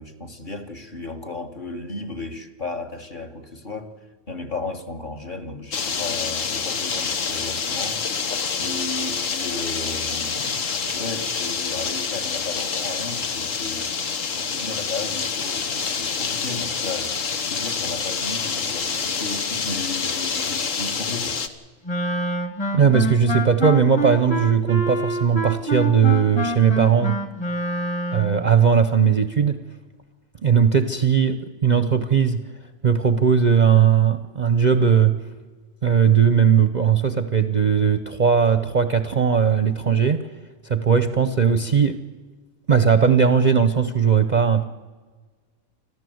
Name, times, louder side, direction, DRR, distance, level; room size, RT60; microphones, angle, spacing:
voice 1, 0.0-3.9 4.3-8.0 8.6-13.9 14.3-17.2 17.4-21.4, left 3 dB, 35° left, 4 dB, 1.8 m, -34 dB
sound 1, 5.7-21.5, left 5 dB, 65° left, 1.6 m, -27 dB
Wind instrument woodwind instrument, 21.8-28.5, right 2 dB, 20° left, 1.8 m, -26 dB
voice 2, 22.7-27.2 28.1-29.6 30.4-32.4 32.8-35.2 35.8-40.3 40.6-42.0 42.7-44.6, right 7 dB, 40° right, 10 dB, 0.8 m, -18 dB
26.0 x 15.0 x 7.9 m, 1.4 s
omnidirectional pair, 1.4 m